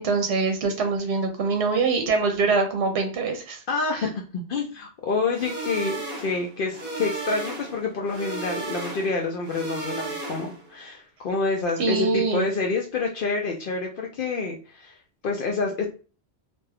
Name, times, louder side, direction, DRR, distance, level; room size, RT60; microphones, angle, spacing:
voice 1, 0.0-3.6 4.0-4.1 11.8-12.4, right 4 dB, 75° right, 5 dB, 0.8 m, -24 dB
voice 2, 3.7-15.0 15.2-15.9, left 3 dB, 60° left, 0 dB, 0.7 m, -28 dB
sound 1, 5.3-10.7, right 2 dB, 50° right, 1.0 m, -34 dB
2.5 x 2.2 x 3.3 m, 0.37 s
omnidirectional pair, 1.1 m